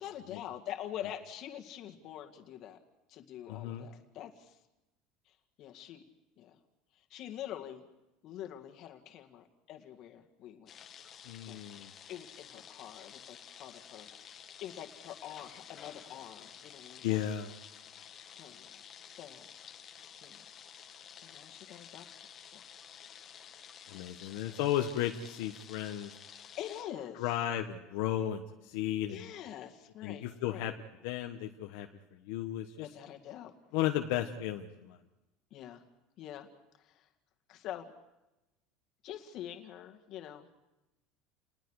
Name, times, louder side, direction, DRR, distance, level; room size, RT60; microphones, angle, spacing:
voice 1, 0.0-2.8 3.1-4.6 5.3-6.0 6.4-6.6 7.0-7.9 8.2-10.7 11.5-11.6 12.1-14.1 14.6-17.2 18.3-19.5 20.2-20.4 21.2-22.1 22.5-22.6 24.2-24.6 26.6-27.2 29.1-30.7 32.8-33.5 35.5-35.8 36.2-36.5 36.8-37.1 37.5-37.9 39.0-40.6, left 11 dB, 45° left, 4 dB, 2.1 m, -45 dB
voice 2, 3.5-3.9 11.2-11.9 17.0-17.5 23.9-26.1 27.1-29.3 30.0-30.7 31.0-32.9 33.7-35.0, left 12 dB, 70° left, 3 dB, 1.3 m, -34 dB
sound 1, 10.7-26.8, left 8 dB, 30° left, 1.5 m, -52 dB
30.0 x 20.5 x 4.9 m, 0.97 s
cardioid pair, 150°, 0 cm